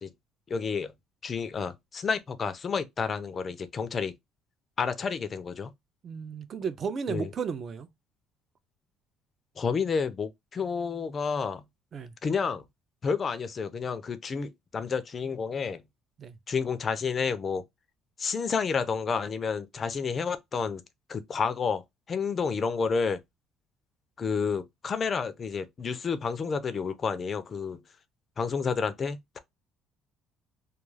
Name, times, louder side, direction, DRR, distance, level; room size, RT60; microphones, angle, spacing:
voice 1, 0.5-0.9 1.2-4.1 4.8-5.7 7.1-7.3 9.6-11.6 12.2-12.6 13.0-15.8 16.5-17.6 18.2-20.8 21.1-21.8 22.1-23.2 24.2-27.8 28.4-29.4, left 5 dB, 30° left, 0.4 m, -30 dB
voice 2, 6.0-7.9 11.9-12.1 16.2-16.4, right 6 dB, 35° right, 0.4 m, -34 dB
2.3 x 2.3 x 3.1 m
cardioid pair, 145°, 0 cm